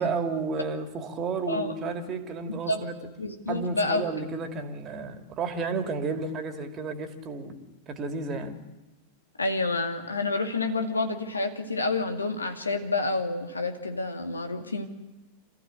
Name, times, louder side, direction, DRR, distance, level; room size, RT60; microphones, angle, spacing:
voice 1, 0.0-3.0 3.5-8.6, right 4 dB, 30° right, 8 dB, 2.4 m, -32 dB
voice 2, 2.5-2.8 3.2-4.0 9.4-14.9, left 3 dB, 80° left, 6 dB, 2.2 m, -29 dB
27.0 x 14.5 x 9.0 m, 1.1 s
figure-of-eight pair, 90°, 0 cm